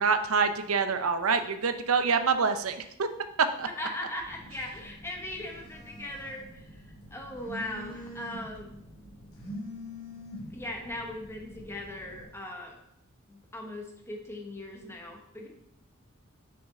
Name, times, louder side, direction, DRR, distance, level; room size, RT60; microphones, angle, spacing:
voice 1, 0.0-3.1 3.6-3.7, right 5 dB, 80° right, 9 dB, 0.6 m, -26 dB
voice 2, 3.6-8.7 10.5-12.8 13.3-15.5, left 1 dB, 10° left, 1 dB, 1.0 m, -39 dB
Telephone, 4.2-12.2, equal, 70° left, 2.0 m, -45 dB
6.3 x 5.8 x 3.8 m, 0.77 s
head